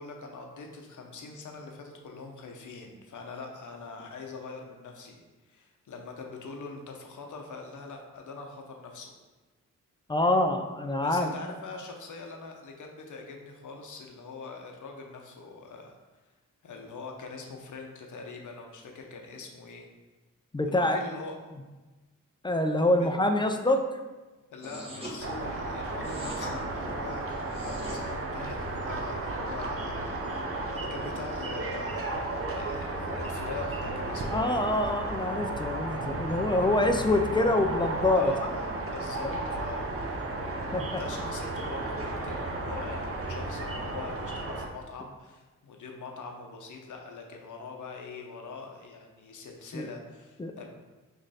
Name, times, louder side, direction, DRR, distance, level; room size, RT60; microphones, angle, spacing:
voice 1, 0.0-9.1 11.0-16.0 16.6-19.9 20.7-21.4 22.9-23.1 24.5-34.6 38.2-39.9 41.0-50.7, left 4 dB, 60° left, 2 dB, 0.7 m, -43 dB
voice 2, 10.1-11.3 20.5-21.0 22.4-24.0 33.1-33.2 34.3-38.3 39.2-39.4 40.7-41.0 49.7-49.9 50.4-50.6, left 1 dB, 15° left, 5 dB, 0.3 m, -26 dB
sound 1, 24.6-25.2 26.0-26.5 27.4-28.0, right 1 dB, 15° right, 1.2 m, -40 dB
sound 2, 25.2-44.7, right 2 dB, 40° right, 0.6 m, -34 dB
3.0 x 2.5 x 4.1 m, 1.2 s
cardioid pair, 50°, 33 cm